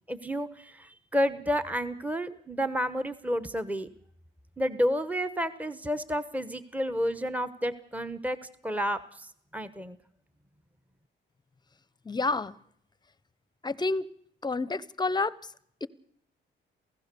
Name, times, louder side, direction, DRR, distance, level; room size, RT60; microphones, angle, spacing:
voice 1, 0.1-3.9 4.6-8.4 8.6-9.3 9.5-10.0, equal, 5° right, 1.0 m, -30 dB
voice 2, 12.1-12.5 13.6-14.1 14.4-15.3 15.8-15.9, left 3 dB, 20° left, 0.8 m, -28 dB
28.0 x 16.0 x 6.8 m
cardioid pair, 90°, 20 cm